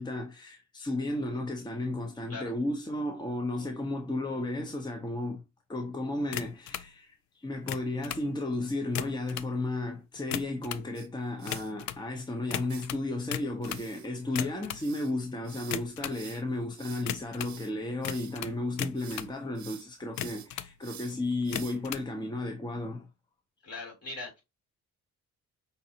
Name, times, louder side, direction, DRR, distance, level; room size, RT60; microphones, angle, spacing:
voice 1, 0.0-5.4 5.7-23.1, left 2 dB, 15° left, 0.8 m, -34 dB
sound 1, 6.3-6.9 7.5-8.3 8.8-9.5 10.2-10.9 11.5-12.0 12.5-13.9 14.3-14.9 15.6-16.2 17.1-17.6 18.0-19.3 20.0-20.7 21.4-22.1, left 11 dB, 70° left, 0.5 m, -36 dB
sound 2, 10.9-11.7 12.7-12.8 13.6-18.4 18.8-19.3 19.5-22.0, right 11 dB, 70° right, 0.9 m, -49 dB
voice 2, 23.6-24.4, left 3 dB, 55° left, 3.0 m, -41 dB
5.4 x 2.7 x 2.8 m
cardioid pair, 90°, 30 cm